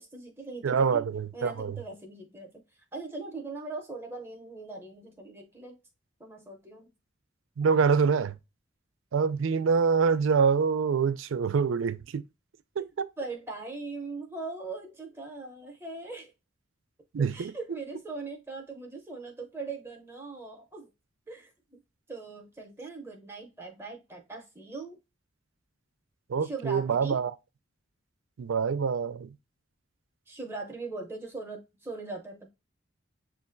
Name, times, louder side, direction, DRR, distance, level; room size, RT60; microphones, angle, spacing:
voice 1, 0.0-1.0 1.3-5.8 6.2-6.9 13.2-16.3 17.3-20.9 21.3-21.8 22.1-25.0 26.4-27.2 30.3-32.5, right 3 dB, 15° right, 0.7 m, -40 dB
voice 2, 0.6-1.8 7.6-8.4 9.1-12.2 12.8-13.1 17.1-17.5 26.3-27.3 28.4-29.3, right 5 dB, 85° right, 0.4 m, -25 dB
7.0 x 2.5 x 2.5 m
head